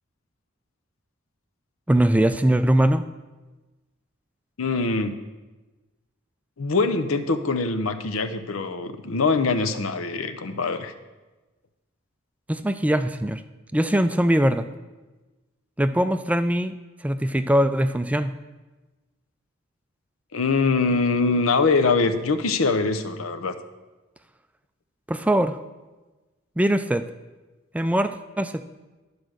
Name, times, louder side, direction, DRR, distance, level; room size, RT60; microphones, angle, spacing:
voice 1, 1.9-3.0 12.5-13.4 13.7-14.7 15.8-16.7 17.0-18.3 25.1-25.6 26.6-27.1 27.7-28.6, right 1 dB, 5° right, 10 dB, 0.3 m, -21 dB
voice 2, 4.6-5.1 6.6-10.9 20.3-23.5, left 4 dB, 90° left, 8 dB, 0.8 m, -23 dB
12.0 x 5.0 x 6.3 m, 1.2 s
head